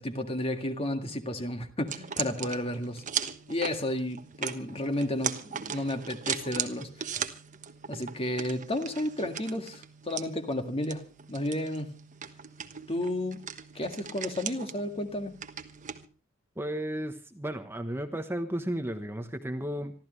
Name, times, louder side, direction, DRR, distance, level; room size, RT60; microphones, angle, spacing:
voice 1, 0.0-3.0 3.5-7.1 7.9-11.0 11.3-11.9 12.9-13.4 13.8-15.4, left 1 dB, 30° left, 2.0 m, -32 dB
sound 1, 1.9-16.1, right 7 dB, 40° right, 1.3 m, -38 dB
voice 2, 16.6-19.9, right 1 dB, 10° right, 1.1 m, -34 dB
27.0 x 13.0 x 3.3 m
head